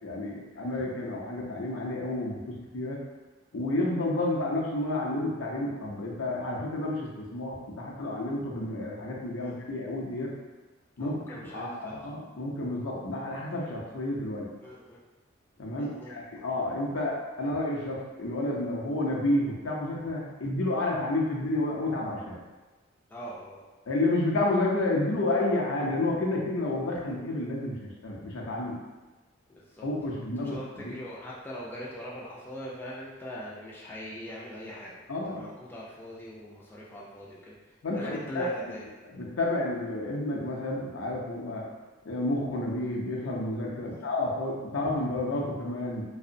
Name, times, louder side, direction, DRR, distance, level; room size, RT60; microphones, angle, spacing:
voice 1, 0.0-3.0 3.5-10.3 11.0-14.5 15.6-22.4 23.9-28.8 29.8-30.9 35.1-35.4 37.8-38.5 39.1-41.6 42.0-46.0, left 2 dB, 80° left, -3 dB, 0.6 m, -30 dB
voice 2, 11.0-12.1 14.6-15.0 15.8-16.5 23.1-23.6 29.5-37.6 37.9-38.8 43.9-44.0, equal, 10° left, -6 dB, 0.3 m, -42 dB
2.8 x 2.0 x 2.5 m, 1.2 s
head